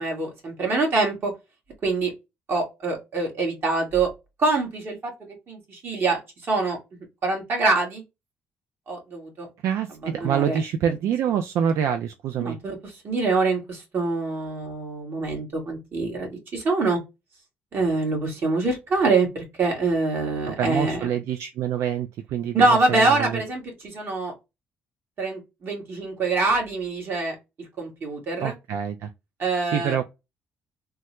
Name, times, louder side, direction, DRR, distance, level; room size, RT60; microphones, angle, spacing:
voice 1, 0.0-1.3 1.8-2.1 2.5-4.1 4.4-5.1 5.5-6.2 6.5-6.8 7.2-8.0 8.9-9.5 10.0-10.6 12.4-17.0 17.7-21.1 22.5-24.3 25.2-27.4 27.8-28.5 29.4-30.0, right 3 dB, 50° right, 1.7 m, -25 dB
voice 2, 9.6-12.6 20.5-23.4 28.4-29.1 29.7-30.0, right 8 dB, 75° right, 0.4 m, -26 dB
3.3 x 2.2 x 2.9 m
cardioid pair, 90°, 5 cm